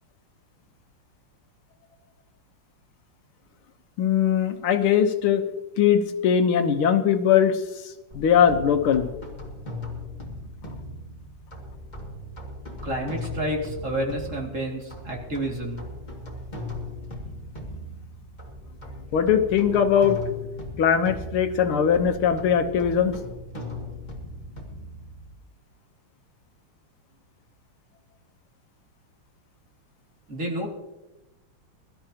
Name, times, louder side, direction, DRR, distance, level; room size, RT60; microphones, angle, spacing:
voice 1, 4.0-5.4 5.8-9.1 19.1-20.2 20.8-23.2, left 8 dB, 85° left, 7 dB, 1.9 m, -21 dB
sound 1, 8.1-25.3, left 1 dB, 20° left, 2.3 m, -38 dB
voice 2, 12.8-15.8 30.3-30.7, right 1 dB, 35° right, -1 dB, 2.8 m, -30 dB
23.0 x 12.5 x 2.9 m, 1.0 s
omnidirectional pair, 2.3 m